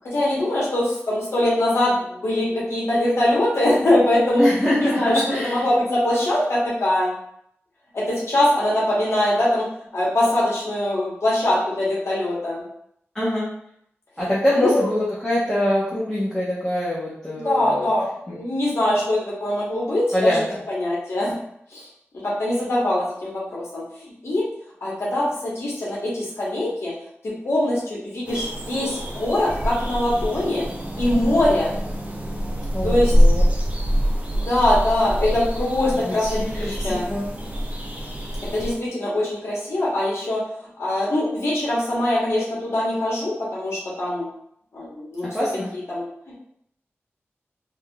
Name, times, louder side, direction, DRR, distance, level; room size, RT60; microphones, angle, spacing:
voice 1, 0.0-4.5 4.8-7.1 7.9-9.6 9.9-12.6 14.5-14.9 17.4-18.0 18.3-21.4 21.7-21.8 22.2-23.8 24.2-24.4 24.8-26.9 27.2-30.6 31.0-31.7 32.8-33.1 34.3-37.1 38.5-40.4 40.8-44.3 44.7-45.3 45.9-46.0, left 1 dB, 70° left, -6 dB, 1.1 m, -22 dB
voice 2, 4.4-5.6 13.1-13.5 14.2-17.9 18.3-18.4 20.1-20.6 32.7-33.4 36.0-37.2 45.3-45.7, left 1 dB, 15° left, -8 dB, 0.9 m, -24 dB
sound 1, 28.3-38.8, equal, 30° right, 0.5 m, -24 dB
3.6 x 2.5 x 2.3 m, 0.72 s
wide cardioid pair, 75°, 5 cm